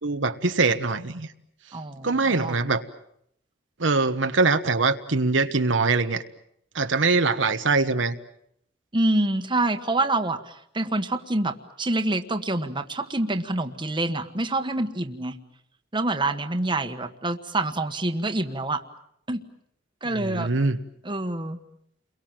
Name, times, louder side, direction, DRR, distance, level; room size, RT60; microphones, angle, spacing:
voice 1, 0.0-1.3 2.0-2.8 3.8-6.2 6.7-8.2 20.0-20.8, right 3 dB, 80° right, 8 dB, 1.3 m, -23 dB
voice 2, 1.7-2.6 8.9-15.4 15.9-18.8 19.3-19.4 20.0-20.5 21.0-21.6, right 2 dB, 25° right, 7 dB, 1.4 m, -26 dB
30.0 x 23.0 x 7.5 m, 0.71 s
head